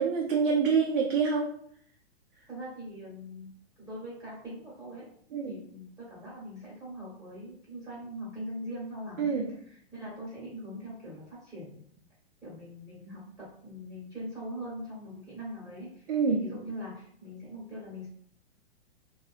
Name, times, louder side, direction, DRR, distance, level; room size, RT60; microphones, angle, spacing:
voice 1, 0.0-1.5 5.3-5.5 9.2-9.4 16.1-16.4, right 5 dB, 55° right, -1 dB, 0.6 m, -26 dB
voice 2, 2.5-3.5 3.8-5.0 5.4-9.3 9.6-11.8 12.4-18.1, equal, 10° right, -8 dB, 1.1 m, -42 dB
2.9 x 2.3 x 2.4 m, 0.63 s
figure-of-eight pair, 110°, 32 cm